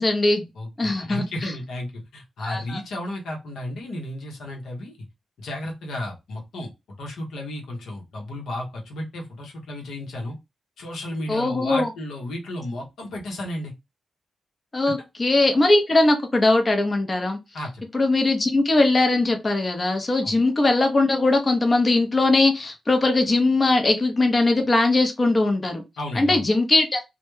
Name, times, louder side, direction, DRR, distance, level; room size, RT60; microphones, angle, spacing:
voice 1, 0.0-0.4 0.8-1.5 2.4-2.8 11.3-11.9 14.7-17.4 17.9-25.8 26.1-27.0, left 2 dB, 40° left, 0.6 m, -20 dB
voice 2, 0.5-5.0 5.4-6.7 7.0-10.4 10.8-13.7 17.5-17.8 20.2-20.4 26.0-26.4, left 1 dB, 85° left, 0.8 m, -33 dB
2.1 x 2.1 x 3.0 m
supercardioid pair, 50°, 0 cm